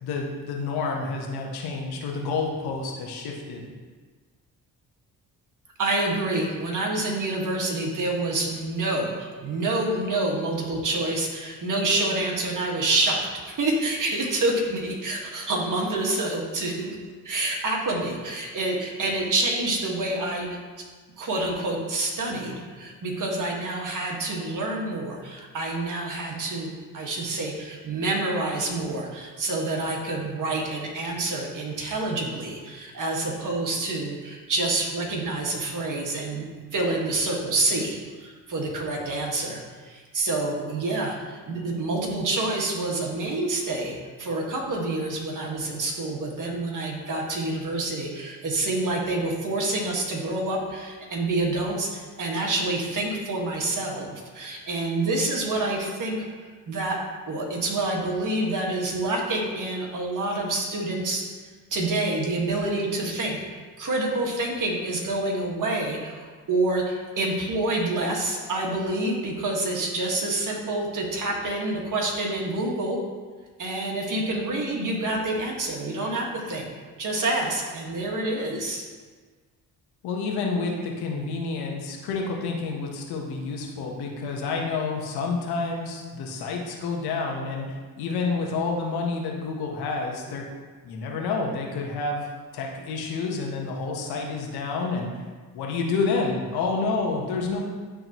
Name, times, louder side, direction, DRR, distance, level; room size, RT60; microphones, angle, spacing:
voice 1, 0.0-3.7 80.0-90.4 90.8-92.3 92.5-95.2 95.5-97.6, left 4 dB, 80° left, 0 dB, 1.3 m, -29 dB
voice 2, 5.8-17.0 17.2-20.6 21.2-36.4 36.7-57.0 57.3-61.2 61.7-73.0 73.6-76.7 77.0-78.8, right 2 dB, 55° right, -1 dB, 1.8 m, -27 dB
11.5 x 3.8 x 3.1 m, 1.5 s
supercardioid pair, 60°, 38 cm